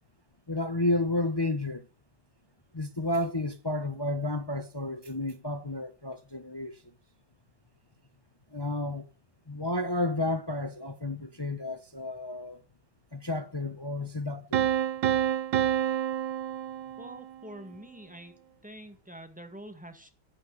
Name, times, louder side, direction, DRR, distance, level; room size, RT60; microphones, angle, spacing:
voice 1, 0.5-1.9 2.7-6.8 8.5-9.1 9.5-12.6 13.1-14.7, left 2 dB, 25° left, 0.6 m, -31 dB
Piano, 14.5-17.4, right 10 dB, 85° right, 1.5 m, -28 dB
voice 2, 17.0-18.3 18.6-20.1, right 1 dB, 5° right, 1.5 m, -46 dB
11.0 x 7.2 x 7.8 m
omnidirectional pair, 1.9 m